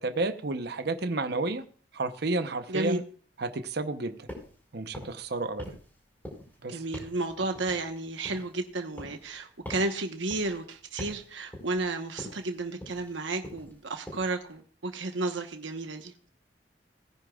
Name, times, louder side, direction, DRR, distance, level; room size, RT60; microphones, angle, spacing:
voice 1, 0.0-1.6 1.9-3.0 3.4-4.3 4.7-5.7 6.6-6.8, right 3 dB, 60° right, 0.8 m, -31 dB
voice 2, 2.7-3.0 6.7-16.3, right 2 dB, 90° right, 1.2 m, -32 dB
sound 1, 4.3-4.6 4.9-5.3 5.6-6.0 6.2-6.6 6.9-7.2 7.5-8.6 9.0-9.3 9.6-9.9 10.3-10.6 11.0-11.3 11.5-11.9 12.2-12.5 12.8-13.1 13.4-13.8 14.1-14.4, equal, 10° left, 5.1 m, -43 dB
19.5 x 10.0 x 2.4 m
head